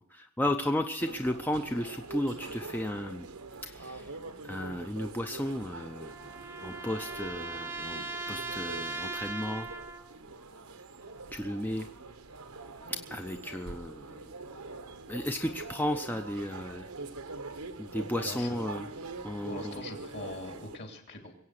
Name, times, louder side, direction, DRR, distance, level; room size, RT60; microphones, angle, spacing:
voice 1, 0.1-3.3 3.6-4.1 4.5-6.1 6.6-9.7 11.3-11.9 12.9-14.2 15.1-16.8 17.8-18.8 19.2-19.8, left 1 dB, 10° left, 5 dB, 0.6 m, -34 dB
sound 1, 1.0-20.8, right 3 dB, 80° right, 1.2 m, -44 dB
sound 2, 5.4-10.2, right 3 dB, 10° right, 0.9 m, -39 dB
voice 2, 18.2-18.6 19.5-21.3, left 2 dB, 50° left, 3 dB, 2.9 m, -42 dB
22.0 x 8.6 x 6.5 m, 0.77 s
head